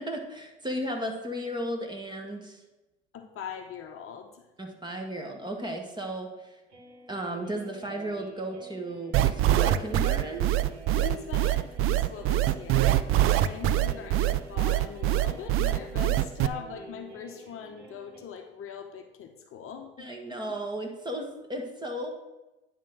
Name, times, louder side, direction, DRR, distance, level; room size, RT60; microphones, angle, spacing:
voice 1, 0.0-2.6 4.6-6.5 7.1-10.5 20.0-22.1, right 1 dB, 15° right, 2 dB, 1.6 m, -35 dB
voice 2, 3.1-4.4 10.9-20.0, left 8 dB, 40° left, 5 dB, 1.0 m, -41 dB
sound 1, 6.7-18.2, right 1 dB, 80° right, 2.1 m, -48 dB
sound 2, 9.1-16.5, right 14 dB, 45° right, 0.5 m, -23 dB
10.0 x 3.7 x 6.0 m, 1.0 s
hypercardioid pair, 80°, 32 cm